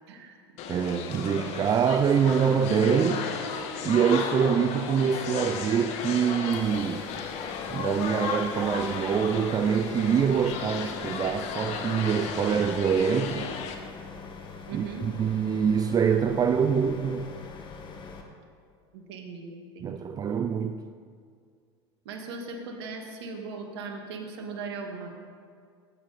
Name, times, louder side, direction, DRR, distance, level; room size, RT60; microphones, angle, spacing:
sound 1, 0.6-13.8, left 6 dB, 55° left, 1.4 m, -34 dB
voice 1, 0.7-3.3 3.8-7.0 7.7-13.5 14.7-17.3 19.8-20.8, right 7 dB, 25° right, 0.5 m, -25 dB
sound 2, 6.5-18.2, left 5 dB, 35° left, 1.7 m, -44 dB
voice 2, 14.7-15.1 18.9-20.1 22.1-25.1, right 4 dB, 75° right, 1.9 m, -39 dB
17.5 x 8.7 x 4.2 m
hypercardioid pair, 95°, 14 cm